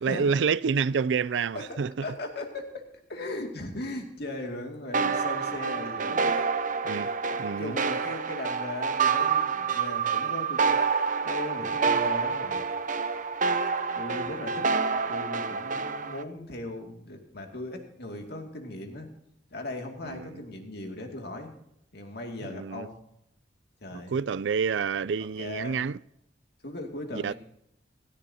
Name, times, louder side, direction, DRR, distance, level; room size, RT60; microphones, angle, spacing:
voice 1, 0.0-2.1 6.8-7.1 7.4-7.7 20.0-20.4 22.4-22.9 23.9-26.0 27.1-27.3, right 6 dB, 80° right, 0.4 m, -28 dB
voice 2, 1.5-6.3 7.2-10.7 11.2-12.6 14.0-19.1 19.5-21.5 21.9-23.0 23.8-24.1 25.4-25.8 26.6-27.3, left 2 dB, 60° left, 2.3 m, -38 dB
sound 1, 4.9-16.2, right 5 dB, 45° right, 0.8 m, -27 dB
17.0 x 13.5 x 2.8 m
head